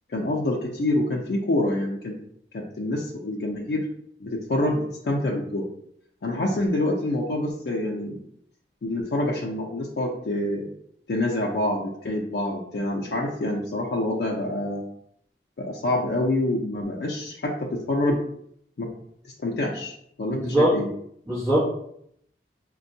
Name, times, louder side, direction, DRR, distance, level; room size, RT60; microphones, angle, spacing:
voice 1, 0.1-2.1 2.5-3.8 4.2-5.7 6.2-8.2 8.8-10.7 11.1-14.8 15.6-18.2 18.8-18.9 19.4-19.9 20.2-20.9, left 1 dB, 70° left, -1 dB, 0.4 m, -26 dB
voice 2, 20.3-20.8 21.3-21.6, right 1 dB, 20° right, -12 dB, 1.1 m, -21 dB
4.2 x 2.2 x 2.6 m, 0.70 s
head